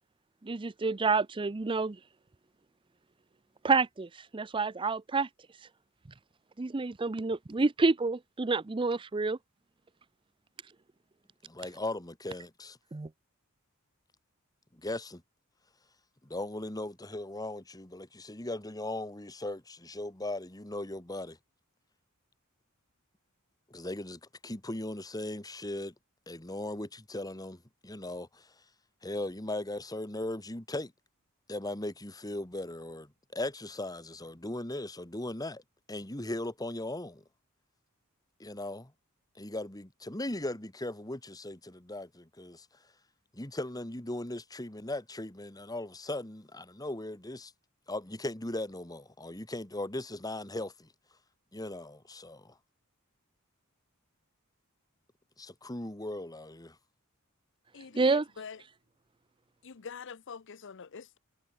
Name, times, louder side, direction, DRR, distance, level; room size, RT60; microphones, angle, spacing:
voice 1, 0.4-2.0 3.6-5.3 6.6-9.4 12.9-13.1 57.9-58.3, right 4 dB, 25° right, 0.5 m, -28 dB
voice 2, 11.4-12.8 14.7-15.2 16.2-21.4 23.7-25.9 26.3-28.5 29.0-30.9 31.5-35.6 35.9-37.2 38.4-38.9 39.4-42.7 43.3-47.5 47.9-50.9 51.5-52.5 55.4-56.8, left 1 dB, 15° left, 1.9 m, -38 dB
voice 3, 57.7-58.6 59.6-61.2, left 6 dB, 55° left, 0.6 m, -45 dB
head